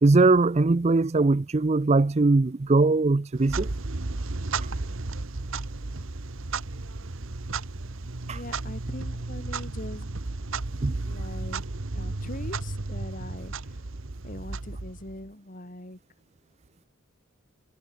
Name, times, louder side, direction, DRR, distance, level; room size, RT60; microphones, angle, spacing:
voice 1, 0.0-3.7 8.3-8.4 10.8-11.0, right 3 dB, 30° right, 0.5 m, -21 dB
Clock, 3.3-15.3, right 3 dB, 65° right, 1.2 m, -34 dB
voice 2, 8.2-10.2 11.1-11.6 11.9-13.8 14.2-16.0, left 1 dB, 40° left, 3.0 m, -41 dB
head